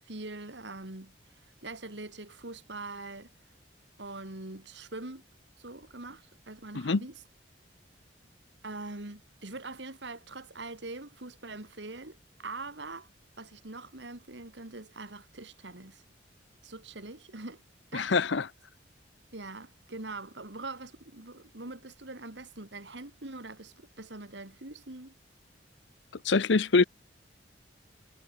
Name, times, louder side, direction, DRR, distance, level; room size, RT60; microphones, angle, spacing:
voice 1, 0.1-1.2 1.4-3.3 4.0-5.2 5.6-7.1 8.6-13.1 13.4-16.0 16.6-17.6 17.9-18.1 19.3-25.1, right 2 dB, 70° right, 2.4 m, -43 dB
voice 2, 17.9-18.5 26.2-26.8, left 4 dB, 75° left, 0.7 m, -24 dB
head